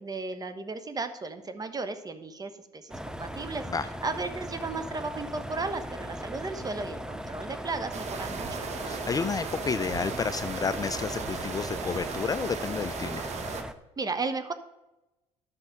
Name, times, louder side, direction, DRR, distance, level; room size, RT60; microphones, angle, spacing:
voice 1, 0.0-3.6 4.0-8.7 14.0-14.5, right 3 dB, 30° right, 9 dB, 1.1 m, -35 dB
sound 1, 2.9-13.7, equal, 5° right, 0.7 m, -38 dB
sound 2, 7.9-13.6, right 6 dB, 55° right, 1.1 m, -37 dB
voice 2, 8.8-13.2, left 5 dB, 25° left, 12 dB, 0.4 m, -31 dB
11.5 x 6.1 x 5.1 m, 0.97 s
supercardioid pair, 75°, 14 cm